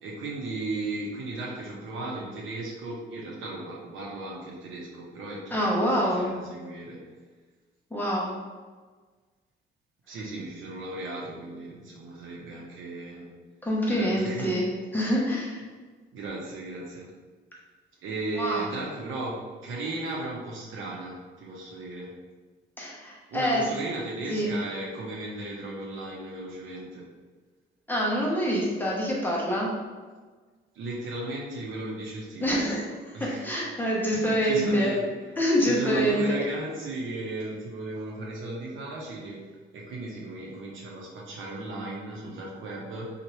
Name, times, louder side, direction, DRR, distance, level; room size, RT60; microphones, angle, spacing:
voice 1, 0.0-7.0 10.1-13.2 13.9-14.6 16.1-17.1 18.0-22.1 23.3-27.1 30.7-32.6 33.1-33.5 34.1-35.1 35.6-39.4 39.7-43.1, right 2 dB, 80° right, -3 dB, 0.8 m, -35 dB
voice 2, 5.5-6.3 7.9-8.3 13.6-15.6 18.4-18.7 22.8-23.7 24.3-24.5 27.9-29.7 32.4-32.9 33.2-34.9 35.4-36.4, equal, 10° left, -5 dB, 0.9 m, -26 dB
2.8 x 2.5 x 3.1 m, 1.4 s
cardioid pair, 90°, 20 cm